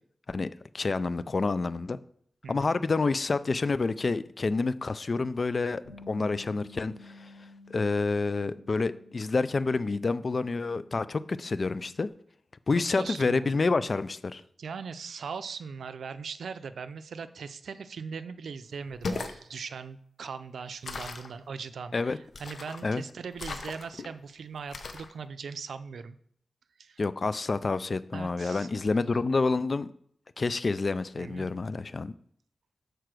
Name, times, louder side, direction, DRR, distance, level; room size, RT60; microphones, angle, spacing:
voice 1, 0.3-2.0 2.5-7.3 7.7-12.1 12.7-14.4 21.9-22.2 22.8-23.0 27.0-29.9 30.4-32.1, left 3 dB, 50° left, 15 dB, 0.4 m, -28 dB
voice 2, 2.4-2.7 12.7-13.5 14.6-26.2 26.8-27.0 28.1-28.7 31.2-31.5, right 5 dB, 90° right, 12 dB, 0.4 m, -40 dB
Bass guitar, 5.8-12.1, left 2 dB, 30° left, 2.8 m, -52 dB
sound 1, 18.9-19.4 20.8-21.3 22.3-22.9 23.4-24.1 24.7-25.1, left 3 dB, 70° left, 0.8 m, -37 dB
6.7 x 4.6 x 6.1 m, 0.65 s
cardioid pair, 70°, 0 cm